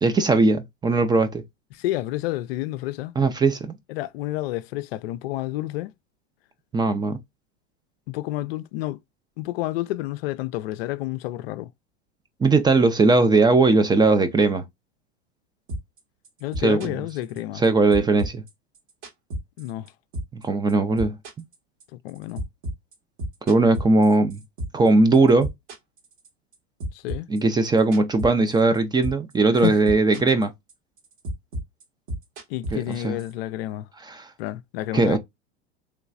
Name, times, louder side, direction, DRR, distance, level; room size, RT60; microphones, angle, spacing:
voice 1, 0.0-1.4 3.2-3.8 6.7-7.2 12.4-14.6 16.6-16.8 17.6-18.4 20.4-21.2 23.5-24.4 24.7-25.5 27.3-30.5 32.7-33.2 34.0-34.3 34.9-35.2, right 3 dB, 15° right, 0.4 m, -19 dB
voice 2, 1.7-3.1 3.9-5.9 8.1-9.0 9.4-11.7 16.4-17.6 19.6-19.9 22.0-22.4 26.9-27.3 29.6-29.8 30.2-30.3 32.5-33.9 34.4-35.2, left 16 dB, 60° left, 0.5 m, -30 dB
sound 1, 15.7-17.7 17.9-19.9 20.1-20.4 20.7-24.9 25.1-26.5 26.8-28.8 29.0-29.3 29.6-30.4 30.7-33.3, equal, 60° right, 1.9 m, -32 dB
3.2 x 3.0 x 2.4 m
hypercardioid pair, 100°, 33 cm